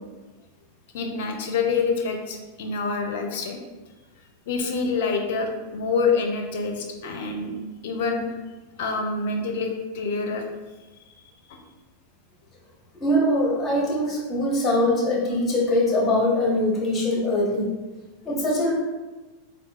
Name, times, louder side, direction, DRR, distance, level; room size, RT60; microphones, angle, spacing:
voice 1, 0.9-3.6 4.5-7.5 7.8-8.4 8.8-10.5 11.1-11.6, left 4 dB, 65° left, 3 dB, 0.5 m, -27 dB
voice 2, 13.0-17.7 18.2-18.7, left 1 dB, 25° left, -3 dB, 1.0 m, -22 dB
3.7 x 2.3 x 2.4 m, 1.2 s
hypercardioid pair, 95°, 0 cm